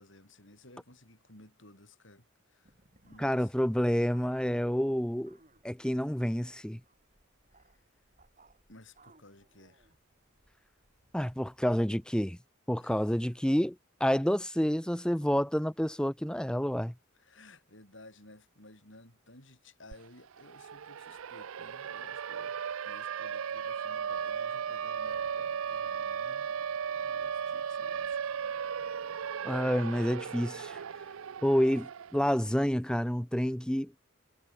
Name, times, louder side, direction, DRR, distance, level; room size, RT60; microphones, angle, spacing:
voice 1, 0.0-2.7 3.0-3.8 7.5-7.8 8.7-9.9 12.8-13.3 17.1-26.5 27.0-28.3, left 2 dB, 60° left, 7.7 m, -56 dB
sound 1, 2.6-12.1, right 2 dB, 35° right, 6.6 m, -65 dB
voice 2, 3.2-5.4 5.6-6.8 11.1-12.4 12.7-16.9 29.4-30.8 31.4-33.9, equal, 5° left, 0.9 m, -29 dB
Siren, 19.9-20.0 20.3-32.4, right 7 dB, 80° right, 0.5 m, -36 dB
head